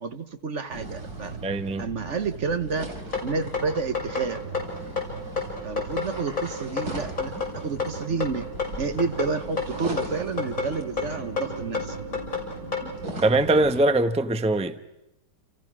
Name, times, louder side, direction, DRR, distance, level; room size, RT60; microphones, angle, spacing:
voice 1, 0.0-1.4 1.8-2.9 3.2-4.4 5.6-8.5 8.8-12.0, right 4 dB, 50° right, 1.4 m, -30 dB
sound 1, 0.7-13.8, right 3 dB, 65° right, 4.5 m, -38 dB
voice 2, 1.4-1.9 13.2-14.8, right 2 dB, 5° right, 0.8 m, -22 dB
sound 2, 3.1-12.9, left 5 dB, 50° left, 7.2 m, -30 dB
30.0 x 29.5 x 6.2 m
omnidirectional pair, 1.8 m